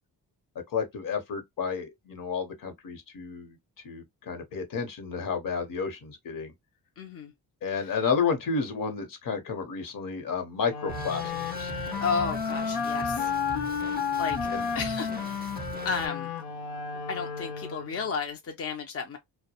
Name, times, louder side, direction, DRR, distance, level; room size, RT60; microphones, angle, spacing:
voice 1, 0.7-3.6 3.8-6.5 7.6-11.3 11.6-11.7 14.5-14.6, left 5 dB, 55° left, 0.9 m, -31 dB
voice 2, 7.0-7.3 7.8-8.0 12.0-13.3 14.2-14.5 14.7-16.3 17.1-19.2, left 5 dB, 35° left, 0.5 m, -33 dB
sound 1, 10.7-18.1, left 6 dB, 80° left, 0.7 m, -32 dB
Drum kit, 10.9-16.1, right 4 dB, 25° right, 0.6 m, -41 dB
2.2 x 2.1 x 2.8 m
cardioid pair, 75°, 39 cm